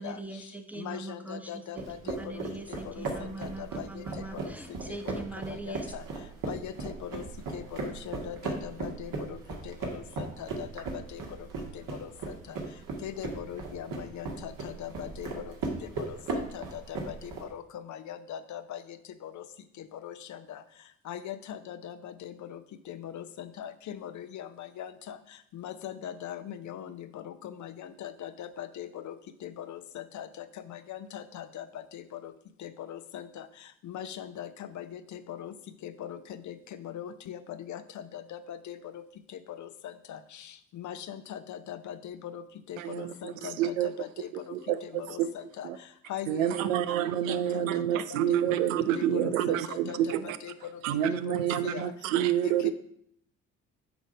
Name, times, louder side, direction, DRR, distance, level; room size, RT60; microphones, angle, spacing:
voice 1, 0.0-1.8 2.2-5.9, right 2 dB, 5° right, 6 dB, 1.1 m, -41 dB
voice 2, 0.8-2.3 2.8-4.0 4.4-4.5 5.7-6.0 6.5-7.2 7.5-9.4 9.6-11.2 12.0-12.1 13.0-15.4 16.0-17.1 17.4-17.6 17.9-18.8 19.2-19.4 20.0-20.6 21.1-22.6 22.9-25.2 25.5-29.1 29.4-31.6 31.9-32.3 32.6-33.5 33.8-34.5 34.7-35.5 35.8-36.2 36.5-36.6 36.8-38.8 39.5-40.2 40.7-42.4 42.7-44.5 44.9-45.7 46.1-46.9 47.3-48.6 48.9-50.0 50.2-50.5 51.1-51.2 51.6-51.9 52.4-52.7, left 10 dB, 45° left, 11 dB, 0.7 m, -41 dB
sound 1, 1.8-17.4, right 3 dB, 55° right, 1.7 m, -37 dB
voice 3, 42.8-43.9 44.5-45.3 45.6-45.8 46.3-50.4 50.8-52.7, right 11 dB, 80° right, 13 dB, 0.5 m, -28 dB
9.1 x 3.9 x 5.1 m, 0.69 s
figure-of-eight pair, 45°, 39 cm